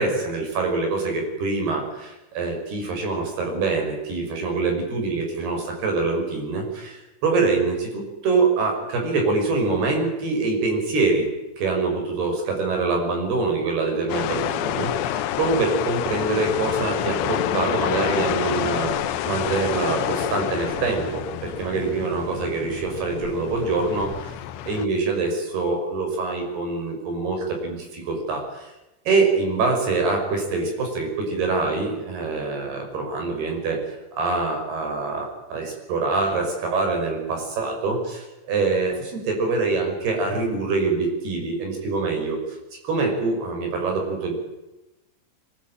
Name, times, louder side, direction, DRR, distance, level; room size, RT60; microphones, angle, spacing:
voice 1, 0.0-18.9 19.2-24.4 24.7-28.7 29.1-33.8 34.1-42.4 42.8-44.3, right 3 dB, 50° right, 3 dB, 7.7 m, -25 dB
sound 1, 14.1-24.9, left 12 dB, 75° left, 2.9 m, -28 dB
24.0 x 21.0 x 8.9 m, 0.98 s
omnidirectional pair, 5.8 m